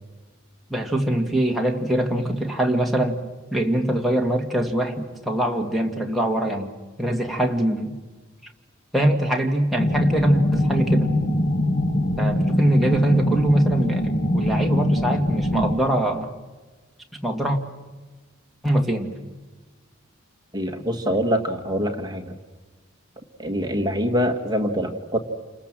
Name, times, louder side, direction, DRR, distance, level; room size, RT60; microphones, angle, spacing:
voice 1, 0.7-3.2 3.5-8.0 8.9-11.1 12.2-16.3 17.2-17.6 18.6-19.1, right 1 dB, ahead, 0 dB, 2.0 m, -23 dB
sound 1, 9.8-15.8, left 1 dB, 45° left, 2.2 m, -22 dB
voice 2, 20.5-22.3 23.4-25.2, equal, 20° right, 4 dB, 1.7 m, -24 dB
29.0 x 27.0 x 7.5 m, 1.3 s
head